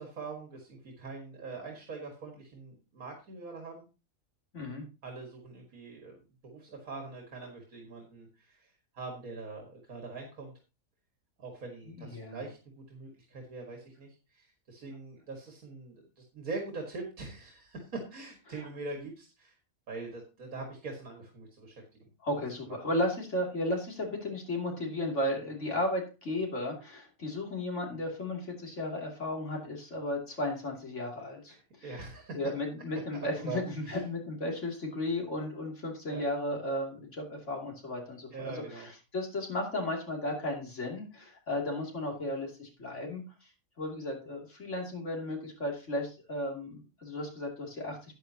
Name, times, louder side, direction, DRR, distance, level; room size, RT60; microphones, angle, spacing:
voice 1, 0.0-3.9 5.0-6.2 6.4-10.5 11.4-19.6 19.9-21.8 22.6-22.8 31.5-32.4 33.4-34.0 36.1-36.3 38.3-38.9, right 3 dB, 80° right, 2 dB, 2.2 m, -43 dB
voice 2, 4.5-4.8 11.9-12.4 22.2-31.6 32.3-43.2 43.8-48.2, left 1 dB, 55° left, 0 dB, 3.1 m, -34 dB
12.5 x 9.0 x 2.8 m, 0.31 s
omnidirectional pair, 1.5 m